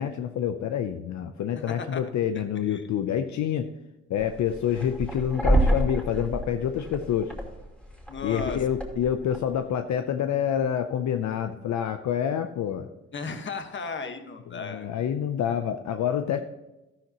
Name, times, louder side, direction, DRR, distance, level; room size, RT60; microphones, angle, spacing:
voice 1, 0.0-3.7 4.1-7.3 8.2-12.9 14.5-16.4, left 9 dB, 65° left, 8 dB, 0.7 m, -27 dB
voice 2, 1.7-2.1 2.7-2.8 8.1-8.7 13.1-14.9, left 4 dB, 40° left, 7 dB, 1.5 m, -35 dB
sound 1, 4.2-9.6, right 1 dB, 5° left, 2.4 m, -28 dB
13.0 x 11.5 x 3.0 m, 1.0 s
cardioid pair, 90°, 30 cm